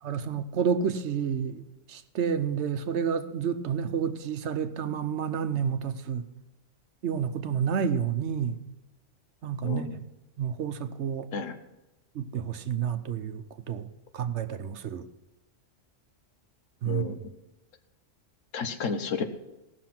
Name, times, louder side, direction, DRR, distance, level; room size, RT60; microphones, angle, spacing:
voice 1, 0.0-1.6 1.9-6.3 7.0-8.6 9.4-10.1 10.4-11.3 12.1-15.1 16.8-17.2, right 7 dB, 65° right, 1.0 m, -30 dB
voice 2, 9.6-10.0 11.3-11.5 16.9-17.2 18.5-19.2, left 5 dB, 90° left, 1.4 m, -31 dB
17.0 x 6.6 x 5.9 m
omnidirectional pair, 1.3 m